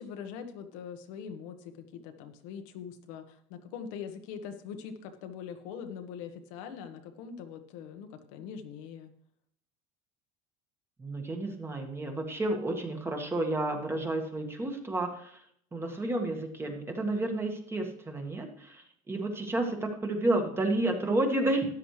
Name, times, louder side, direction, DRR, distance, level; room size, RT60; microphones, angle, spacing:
voice 1, 0.0-9.1, left 7 dB, 75° left, 6 dB, 1.4 m, -42 dB
voice 2, 11.0-15.4 15.7-21.7, right 2 dB, 15° right, 3 dB, 1.6 m, -31 dB
13.0 x 10.0 x 3.3 m, 0.67 s
cardioid pair, 135°, 17 cm